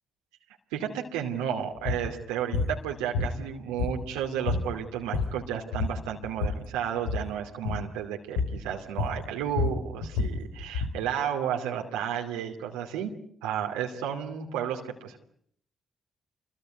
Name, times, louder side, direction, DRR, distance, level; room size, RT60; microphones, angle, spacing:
voice 1, 0.7-13.1 13.4-15.2, right 9 dB, 85° right, 1 dB, 2.6 m, -32 dB
sound 1, 1.8-2.1 2.5-2.8 3.1-4.2 4.5-4.7 5.0-5.4 5.7-6.6 7.0-7.3 7.6-7.9 8.4-8.6 9.0-11.0, left 4 dB, 90° left, 3.0 m, -29 dB
27.5 x 23.0 x 9.1 m, 0.66 s
hypercardioid pair, 45°, 0 cm